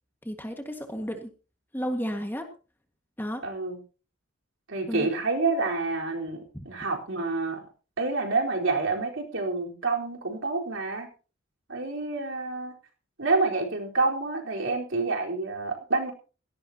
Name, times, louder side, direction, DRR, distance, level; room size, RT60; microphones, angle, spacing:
voice 1, 0.2-1.3 1.7-2.5 3.2-3.4 4.9-5.1 6.5-6.6, equal, 10° left, 5 dB, 1.8 m, -32 dB
voice 2, 3.4-3.8 4.7-7.6 8.0-11.1 11.7-12.7 13.2-16.1, right 3 dB, 65° right, 0 dB, 4.3 m, -28 dB
17.5 x 17.0 x 2.9 m, 0.36 s
head